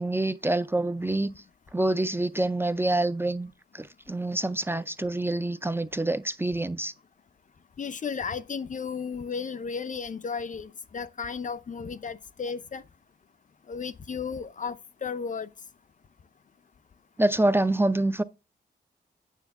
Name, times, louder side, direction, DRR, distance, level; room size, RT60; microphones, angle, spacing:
voice 1, 0.0-1.3 1.7-6.9 17.2-18.2, right 2 dB, 15° right, 0.5 m, -26 dB
voice 2, 7.8-12.8 13.7-15.5, left 6 dB, 45° left, 0.6 m, -34 dB
9.2 x 6.7 x 3.6 m
wide cardioid pair, 130°, 18 cm